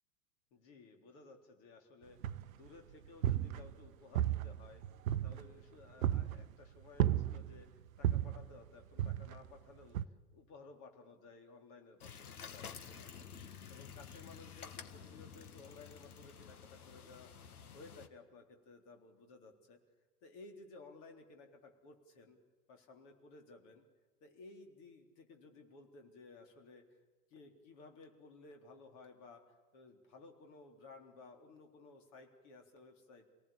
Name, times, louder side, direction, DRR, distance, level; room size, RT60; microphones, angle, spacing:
voice 1, 0.5-2.2 2.5-4.8 5.2-13.3 13.7-17.3 17.7-19.8 20.2-22.4 22.7-23.9 24.2-26.8 27.3-33.3, left 3 dB, 40° left, 4 dB, 3.7 m, -57 dB
sound 1, 2.2-2.7 3.1-3.9 4.2-5.6 6.0-6.5 7.0-7.6 8.0-8.5 9.0-9.5 10.0-10.1, right 12 dB, 60° right, 0.8 m, -34 dB
sound 2, 12.0-18.1, left 7 dB, 65° left, 1.6 m, -51 dB
27.5 x 18.5 x 8.5 m, 1.3 s
figure-of-eight pair, 90°, 47 cm